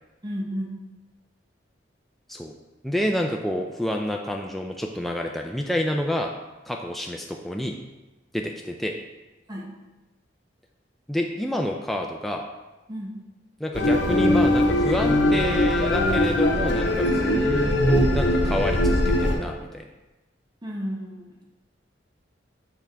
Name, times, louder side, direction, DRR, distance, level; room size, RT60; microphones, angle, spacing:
voice 1, 0.2-0.7 9.5-9.7 12.9-13.1 20.6-21.4, equal, 20° right, -2 dB, 0.9 m, -32 dB
voice 2, 2.8-6.3 6.7-7.8 8.3-8.9 11.1-12.4 13.6-19.9, left 1 dB, ahead, 1 dB, 0.3 m, -28 dB
sound 1, 13.7-19.3, left 1 dB, 75° left, 0.9 m, -21 dB
7.0 x 3.5 x 4.5 m, 1.1 s
head